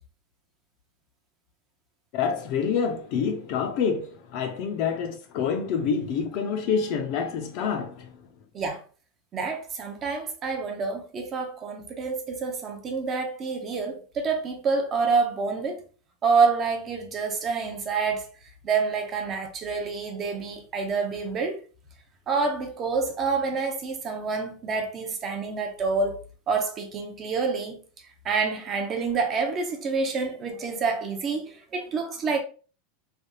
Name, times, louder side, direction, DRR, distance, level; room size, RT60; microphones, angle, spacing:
voice 1, 2.1-8.1, left 6 dB, 40° left, 0.5 m, -27 dB
voice 2, 9.3-15.8 16.2-18.3 18.6-21.6 22.3-26.2 26.5-27.8 28.2-32.4, right 4 dB, 25° right, 0.5 m, -27 dB
3.3 x 2.3 x 2.7 m
supercardioid pair, 170°, 0 cm